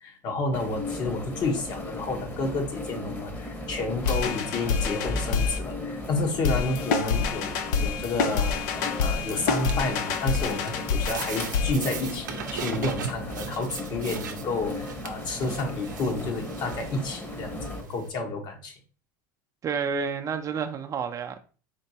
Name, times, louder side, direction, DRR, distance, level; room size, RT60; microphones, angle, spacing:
voice 1, 0.0-8.6 9.0-18.7, left 3 dB, 45° left, 1.1 m, -30 dB
sound 1, 0.5-17.8, left 1 dB, 20° left, 1.1 m, -36 dB
sound 2, 4.0-5.6 6.4-11.7, left 5 dB, 75° left, 0.5 m, -27 dB
sound 3, 8.3-18.1, right 8 dB, 85° right, 0.5 m, -40 dB
voice 2, 19.6-21.4, right 6 dB, 35° right, 0.5 m, -30 dB
4.4 x 2.9 x 2.8 m
hypercardioid pair, 90°, 10 cm